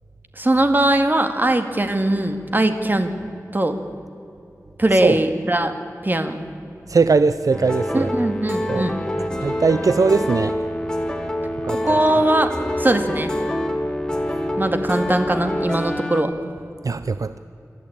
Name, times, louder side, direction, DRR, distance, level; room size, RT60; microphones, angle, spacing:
voice 1, 0.4-3.1 3.5-3.8 4.8-5.7 6.0-6.4 7.9-9.0 11.7-12.5 12.8-13.3 14.6-16.3, right 1 dB, 30° right, 7 dB, 2.0 m, -20 dB
voice 2, 6.9-8.1 8.7-8.8 9.4-10.6 11.6-11.8 16.8-17.4, right 4 dB, 70° right, 13 dB, 0.5 m, -19 dB
sound 1, 7.5-16.2, left 1 dB, 15° left, 2.4 m, -26 dB
27.0 x 13.0 x 8.7 m, 2.7 s
wide cardioid pair, 80°, 6 cm